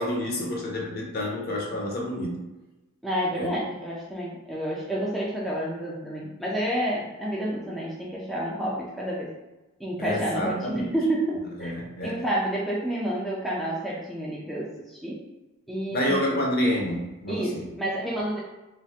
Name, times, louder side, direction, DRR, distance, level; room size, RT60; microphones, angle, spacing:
voice 1, 0.0-2.4 3.3-3.5 10.0-10.9 11.6-12.2 15.9-17.6, left 1 dB, 45° left, -1 dB, 0.6 m, -28 dB
voice 2, 3.0-9.3 9.8-11.7 12.0-15.2 15.7-16.4 17.3-18.4, right 1 dB, ahead, -6 dB, 0.3 m, -29 dB
3.1 x 2.0 x 2.7 m, 1.1 s
head